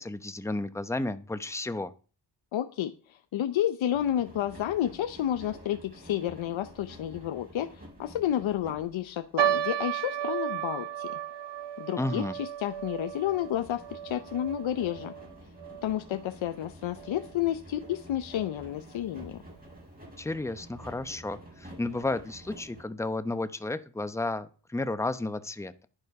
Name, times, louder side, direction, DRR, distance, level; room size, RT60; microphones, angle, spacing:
voice 1, 0.0-1.9 12.0-12.4 20.2-25.9, left 2 dB, 5° left, 11 dB, 0.8 m, -32 dB
voice 2, 2.5-11.2 11.8-15.1 15.8-19.4, left 11 dB, 90° left, 9 dB, 0.8 m, -31 dB
sound 1, 3.9-22.8, right 1 dB, 20° right, 5.8 m, -50 dB
sound 2, 9.4-15.9 16.1-16.2 17.0-17.3 17.9-18.0 18.3-18.5, right 10 dB, 70° right, 1.0 m, -33 dB
11.0 x 9.9 x 4.8 m, 0.37 s
wide cardioid pair, 100°, 45 cm